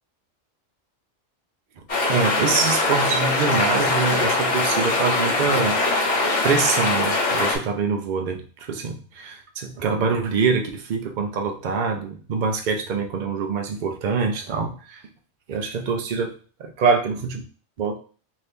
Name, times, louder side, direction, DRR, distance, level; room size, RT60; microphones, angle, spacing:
sound 1, 1.9-7.6, left 2 dB, 35° left, 1.1 m, -22 dB
voice 1, 2.1-5.8 6.4-15.0 15.5-16.3 16.6-17.4 17.8-18.0, right 5 dB, 60° right, 4 dB, 0.5 m, -24 dB
2.9 x 2.7 x 3.4 m, 0.39 s
omnidirectional pair, 1.3 m